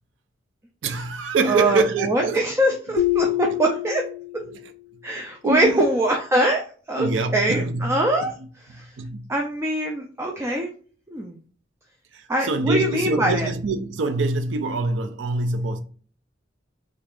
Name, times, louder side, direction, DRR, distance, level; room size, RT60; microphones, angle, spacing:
voice 1, 0.8-2.4 4.5-4.6 5.4-5.8 7.0-8.3 8.7-9.3 12.1-15.8, right 3 dB, 80° right, 0.4 m, -25 dB
voice 2, 1.4-4.0 5.0-8.3 8.7-8.9 9.3-10.7 11.1-11.4 12.3-13.5, right 1 dB, 15° right, 0.4 m, -23 dB
sound 1, 3.0-4.7, left 14 dB, 55° left, 0.4 m, -25 dB
3.5 x 3.1 x 2.4 m
head